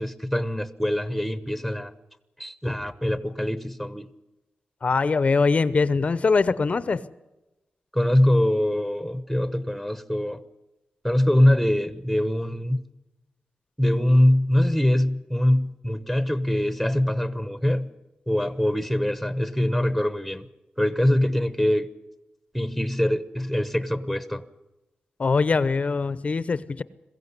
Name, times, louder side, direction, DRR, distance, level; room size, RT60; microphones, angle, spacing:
voice 1, 0.0-1.9 2.4-4.1 7.9-10.4 11.0-12.8 13.8-17.9 18.3-20.5 20.8-21.9 22.5-24.4, left 1 dB, ahead, 1.0 m, -23 dB
voice 2, 4.8-7.0 25.2-26.8, left 4 dB, 40° left, 0.7 m, -22 dB
22.0 x 15.5 x 9.8 m
wide cardioid pair, 120°, 3 cm